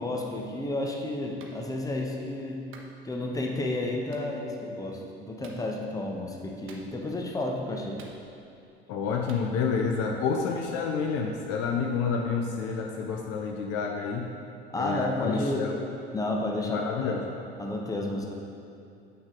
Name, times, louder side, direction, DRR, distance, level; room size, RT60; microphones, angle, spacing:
voice 1, 0.0-2.7 3.0-8.0 14.7-15.7 16.1-17.1 17.6-18.4, left 2 dB, 10° left, 0 dB, 1.0 m, -31 dB
Clapping, 1.4-1.6 2.7-2.9 4.1-4.3 5.4-5.6 6.7-7.1 8.0-8.5 9.3-9.5, right 4 dB, 40° right, 1.0 m, -51 dB
voice 2, 8.9-14.3 14.8-15.8 16.6-17.3, left 5 dB, 50° left, 2 dB, 0.7 m, -29 dB
8.0 x 6.1 x 3.8 m, 2.6 s
figure-of-eight pair, 65°, 32 cm